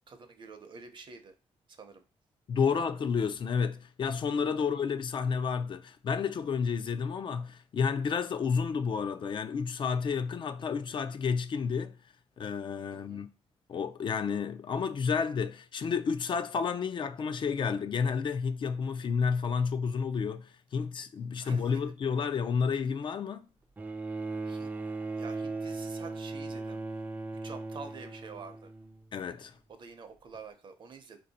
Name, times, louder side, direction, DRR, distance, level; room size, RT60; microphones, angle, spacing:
voice 1, 0.1-1.3 1.7-2.0 2.7-2.9 4.6-4.7 12.9-13.3 21.4-21.9 24.4-24.7 25.2-27.1 27.4-28.7 29.7-31.2, right 5 dB, 45° right, 0.7 m, -48 dB
voice 2, 2.5-12.0 12.4-13.3 13.7-23.5 29.1-29.5, left 6 dB, 45° left, 0.4 m, -31 dB
Bowed string instrument, 23.8-29.2 30.3-30.4, right 3 dB, 15° right, 0.4 m, -38 dB
4.2 x 2.7 x 4.1 m
cardioid pair, 125°, 11 cm